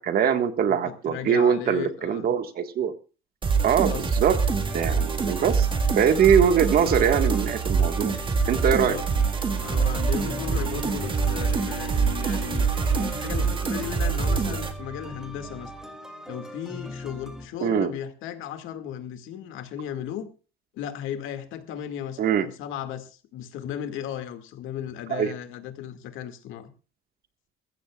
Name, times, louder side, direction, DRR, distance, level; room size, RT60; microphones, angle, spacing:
voice 1, 0.0-2.9 3.6-4.4 4.7-5.7 6.0-8.1 8.5-9.0 17.6-17.9 22.2-22.5 25.1-25.3, right 8 dB, 50° right, 8 dB, 1.7 m, -22 dB
voice 2, 0.7-2.3 3.7-4.1 8.7-9.0 9.6-15.7 16.3-20.3 20.7-26.7, left 10 dB, 75° left, 7 dB, 2.2 m, -36 dB
sound 1, 3.4-14.7, right 5 dB, 25° right, 1.8 m, -25 dB
sound 2, 4.5-17.5, right 1 dB, 5° right, 2.5 m, -39 dB
sound 3, 7.6-15.7, right 5 dB, 70° right, 6.7 m, -42 dB
22.5 x 14.5 x 2.4 m, 0.34 s
cardioid pair, 160°, 21 cm